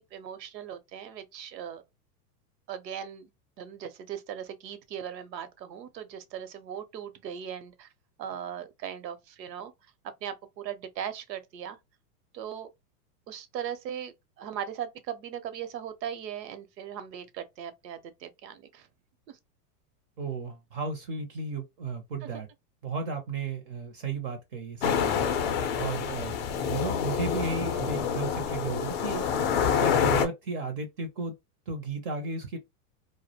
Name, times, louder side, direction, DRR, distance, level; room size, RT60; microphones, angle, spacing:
voice 1, 0.0-1.8 2.7-3.3 3.6-7.9 8.2-9.7 10.2-11.8 12.3-12.7 13.3-18.9 19.3-19.4, right 9 dB, 85° right, 0.7 m, -39 dB
voice 2, 20.2-22.5 22.8-25.2 25.8-26.4 26.7-29.2 29.8-31.3 31.7-32.6, right 4 dB, 35° right, 0.4 m, -34 dB
sound 1, 24.8-30.3, left 7 dB, 40° left, 0.4 m, -27 dB
2.3 x 2.0 x 2.6 m
supercardioid pair, 140°, 49 cm